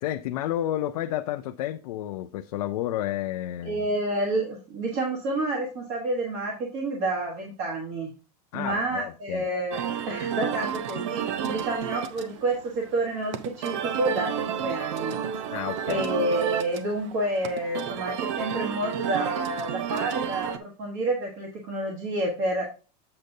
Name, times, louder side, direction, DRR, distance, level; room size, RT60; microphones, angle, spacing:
voice 1, 0.0-3.9 8.5-9.5 15.5-16.0, left 13 dB, 65° left, 0.5 m, -31 dB
voice 2, 3.6-8.1 8.5-15.1 15.9-22.7, right 2 dB, 30° right, 1.3 m, -29 dB
sound 1, 9.7-20.6, right 8 dB, 45° right, 0.7 m, -31 dB
7.7 x 6.6 x 2.7 m
supercardioid pair, 180°, 20 cm